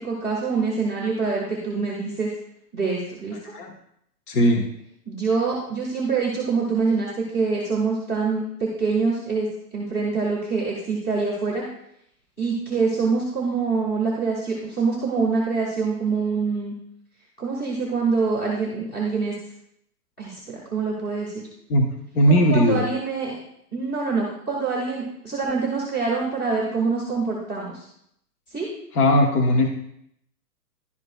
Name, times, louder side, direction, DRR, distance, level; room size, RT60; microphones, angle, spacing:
voice 1, 0.0-2.3 2.7-3.4 5.1-11.7 12.4-16.8 17.4-19.4 20.2-21.4 22.3-23.4 23.7-27.9 28.5-28.7, right 4 dB, 5° left, -8 dB, 0.5 m, -25 dB
voice 2, 4.3-4.7 21.7-21.9 22.1-22.8 28.9-29.7, equal, 65° left, 3 dB, 1.2 m, -18 dB
11.5 x 5.0 x 2.3 m, 0.72 s
hypercardioid pair, 155°, 48 cm